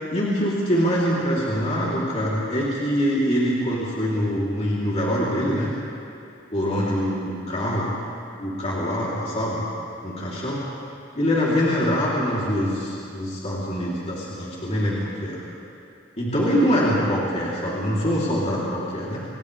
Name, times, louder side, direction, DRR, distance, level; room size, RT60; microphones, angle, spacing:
voice 1, 0.1-5.7 6.5-7.9 8.4-9.6 10.0-10.6 11.1-15.4 16.2-19.2, equal, 35° left, -7 dB, 3.5 m, -24 dB
29.5 x 25.5 x 3.5 m, 2.6 s
head